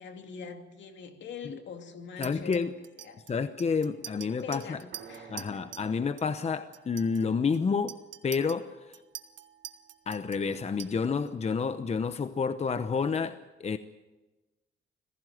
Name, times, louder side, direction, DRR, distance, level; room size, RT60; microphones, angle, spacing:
voice 1, 0.0-3.2 4.1-5.7, left 6 dB, 65° left, 2.6 m, -44 dB
voice 2, 2.2-2.7 3.3-4.8 5.3-8.0 8.2-8.7 10.1-13.8, left 5 dB, 35° left, 0.9 m, -29 dB
Chink clink, 2.2-5.9 6.2-6.5 6.7-11.3, right 11 dB, 70° right, 1.2 m, -46 dB
sound 1, 4.9-8.8, right 6 dB, 85° right, 4.4 m, -54 dB
25.5 x 16.5 x 7.8 m
cardioid pair, 90°, 20 cm